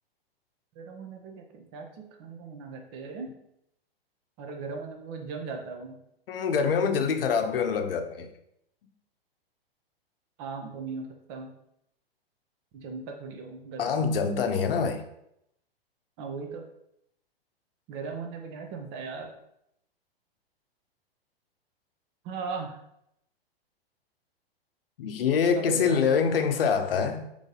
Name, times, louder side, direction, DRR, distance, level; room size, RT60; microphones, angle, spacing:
voice 1, 0.7-3.3 4.4-6.0 10.4-11.5 12.7-14.0 16.2-16.7 17.9-19.3 22.2-22.8 25.3-26.0, right 4 dB, 35° right, 3 dB, 0.9 m, -38 dB
voice 2, 6.3-8.3 13.8-15.0 25.0-27.2, left 6 dB, 65° left, 7 dB, 0.7 m, -25 dB
3.9 x 3.3 x 3.8 m, 0.77 s
hypercardioid pair, 110°, 30 cm